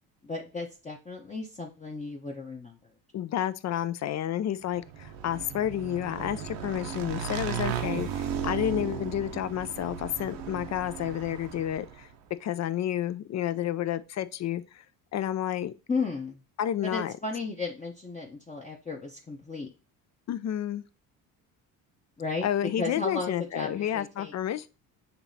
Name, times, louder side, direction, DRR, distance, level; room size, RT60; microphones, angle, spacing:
voice 1, 0.2-2.8 15.9-16.4 16.8-19.7 22.2-24.3, left 3 dB, 15° left, 0.8 m, -34 dB
voice 2, 3.1-12.1 12.4-14.8 15.1-15.7 16.6-17.1 20.3-20.8 22.4-24.7, left 11 dB, 40° left, 0.4 m, -30 dB
Motorcycle / Engine, 4.8-12.1, right 8 dB, 70° right, 0.8 m, -35 dB
6.8 x 2.9 x 2.7 m
supercardioid pair, 65°, 44 cm